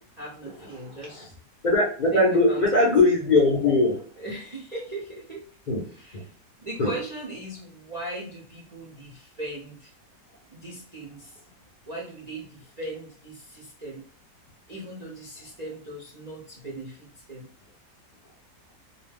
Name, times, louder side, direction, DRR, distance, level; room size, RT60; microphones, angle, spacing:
voice 1, 0.2-1.3 2.1-2.6 4.2-5.5 5.9-6.3 6.6-9.9 10.5-11.4 11.9-14.0 14.7-17.0 17.3-17.5, right 2 dB, 50° right, -4 dB, 0.5 m, -38 dB
voice 2, 1.6-4.0 5.7-5.8 6.1-6.2 6.8-6.9, left 2 dB, 55° left, -4 dB, 0.5 m, -20 dB
2.7 x 2.2 x 3.3 m, 0.41 s
omnidirectional pair, 1.8 m